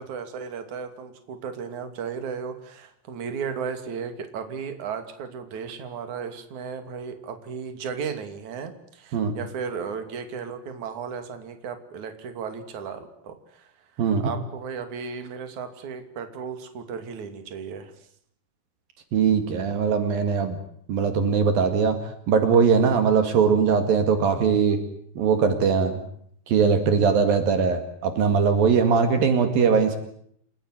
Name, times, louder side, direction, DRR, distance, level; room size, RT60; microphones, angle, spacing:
voice 1, 0.0-13.7 14.2-17.9, right 6 dB, 55° right, 8 dB, 3.9 m, -35 dB
voice 2, 14.0-14.3 19.1-20.6 20.9-22.0 22.3-24.8 25.2-26.0 26.5-30.0, right 6 dB, 70° right, 8 dB, 3.8 m, -20 dB
29.5 x 16.5 x 9.4 m, 0.69 s
omnidirectional pair, 4.3 m